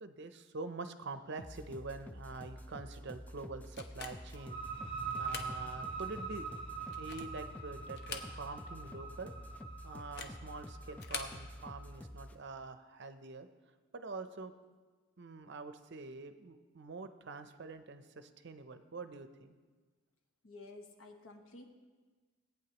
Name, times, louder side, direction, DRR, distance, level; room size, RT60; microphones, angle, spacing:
voice 1, 0.0-4.6 5.2-6.5 7.0-9.3 9.8-13.5 13.9-14.5 15.2-19.5, right 3 dB, 50° right, 10 dB, 0.6 m, -46 dB
sound 1, 1.4-12.4, equal, 5° left, 0.3 m, -49 dB
sound 2, 3.8-4.4 5.1-5.6 6.0-6.1 6.8-7.4 7.9-8.7 9.0-9.1 10.0-10.4 10.9-11.4, left 5 dB, 50° left, 0.9 m, -45 dB
sound 3, 4.3-11.8, right 5 dB, 25° left, 1.4 m, -44 dB
voice 2, 20.4-21.7, left 2 dB, 70° left, 4 dB, 1.2 m, -52 dB
18.0 x 9.1 x 2.9 m, 1.4 s
head